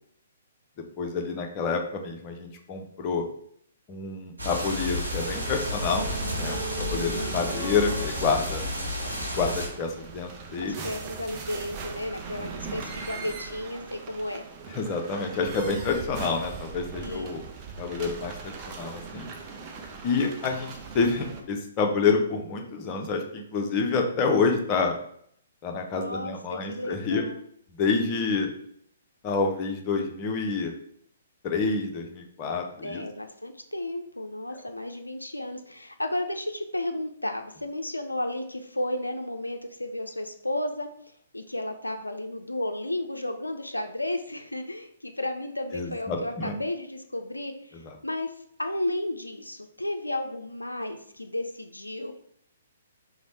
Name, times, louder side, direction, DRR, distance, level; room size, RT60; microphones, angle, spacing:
voice 1, 1.0-3.2 3.9-6.1 6.4-8.6 9.4-10.9 12.3-12.5 14.7-17.4 17.8-19.3 20.0-25.0 25.6-27.2 27.8-28.5 29.2-30.7 31.4-33.0 34.5-34.6 45.7-46.5 47.8-47.9, left 4 dB, 30° left, 3 dB, 0.6 m, -28 dB
sound 1, 4.4-9.7, left 1 dB, 90° right, 1.1 m, -32 dB
sound 2, 5.1-21.4, right 4 dB, 30° right, 0.5 m, -39 dB
voice 2, 6.9-7.4 10.8-14.4 17.0-17.3 25.9-27.4 32.8-48.3 48.6-52.1, left 1 dB, 90° left, 6 dB, 0.3 m, -33 dB
3.0 x 2.0 x 4.0 m, 0.66 s
figure-of-eight pair, 125°, 0 cm